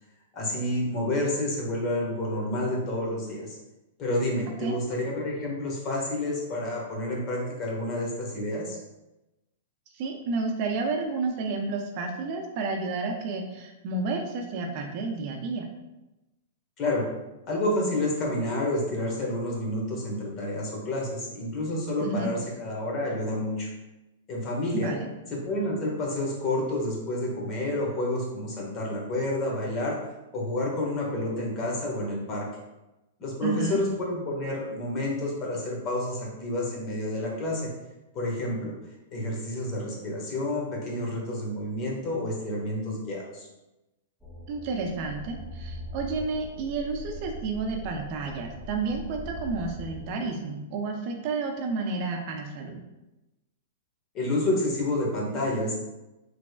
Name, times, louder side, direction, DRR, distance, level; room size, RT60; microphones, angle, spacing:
voice 1, 0.3-3.6 4.0-8.8 16.8-17.0 17.5-23.7 24.3-24.9 25.4-30.0 30.3-32.5 33.2-37.7 38.1-38.7 39.1-43.5 54.1-55.8, left 1 dB, 35° left, -2 dB, 1.5 m, -29 dB
voice 2, 9.9-15.7 22.0-22.3 24.7-25.1 33.4-33.8 44.5-52.8, right 3 dB, 45° right, 2 dB, 0.7 m, -31 dB
sound 1, 44.2-50.1, equal, 5° left, 0.9 m, -41 dB
6.0 x 3.3 x 2.4 m, 1.0 s
hypercardioid pair, 110°, 0 cm